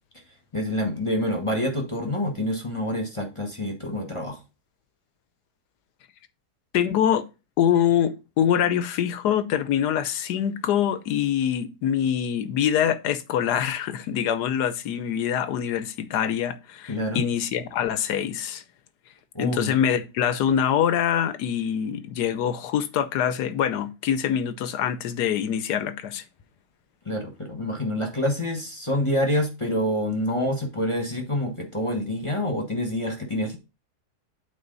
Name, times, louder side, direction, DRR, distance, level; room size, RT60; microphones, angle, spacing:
voice 1, 0.5-4.4 16.9-17.2 19.3-19.7 27.0-33.6, left 1 dB, 20° left, 1.2 m, -27 dB
voice 2, 6.7-7.3 7.6-18.6 19.4-26.2, left 9 dB, 90° left, 1.3 m, -24 dB
8.7 x 4.4 x 3.9 m
omnidirectional pair, 1.7 m